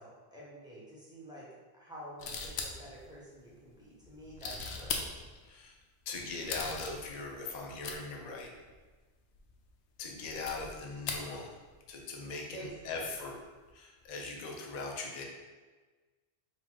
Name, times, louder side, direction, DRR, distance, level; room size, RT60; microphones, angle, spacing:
voice 1, 0.0-1.5 1.7-5.2 12.5-13.1, right 1 dB, 5° right, -7 dB, 1.1 m, -49 dB
sound 1, 2.2-3.0 4.0-5.5 6.2-8.0 8.4-8.5 8.7-8.8 9.3-9.7 10.2-11.3 11.6-12.1 12.6-13.7 14.0-14.1, left 4 dB, 80° left, 0.8 m, -40 dB
voice 2, 5.4-5.7 6.1-8.5 10.0-11.6 11.9-13.4 13.7-15.2, left 3 dB, 50° left, 0 dB, 0.6 m, -40 dB
4.0 x 2.4 x 4.6 m, 1.3 s
omnidirectional pair, 1.1 m